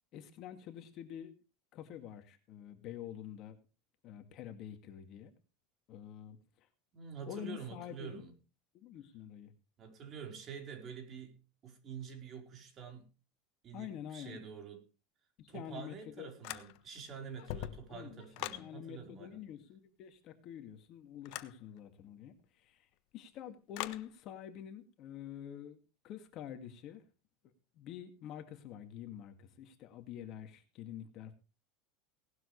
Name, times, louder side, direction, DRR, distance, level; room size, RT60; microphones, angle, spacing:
voice 1, 0.1-1.3 1.7-3.6 4.0-5.3 5.9-6.7 7.3-8.2 8.7-9.5 13.7-14.4 15.4-16.3 17.9-18.2 18.6-22.9 23.1-25.8 26.0-27.0 27.4-31.3, left 10 dB, 45° left, 7 dB, 2.2 m, -47 dB
voice 2, 6.9-8.3 9.8-13.1 13.6-14.8 15.5-19.4, right 6 dB, 35° right, 4 dB, 4.5 m, -47 dB
sound 1, 16.4-17.0 17.4-18.7 21.3-21.6 23.7-24.1, left 15 dB, 60° left, 1.2 m, -42 dB
18.5 x 12.0 x 3.3 m, 0.33 s
supercardioid pair, 140°, 0 cm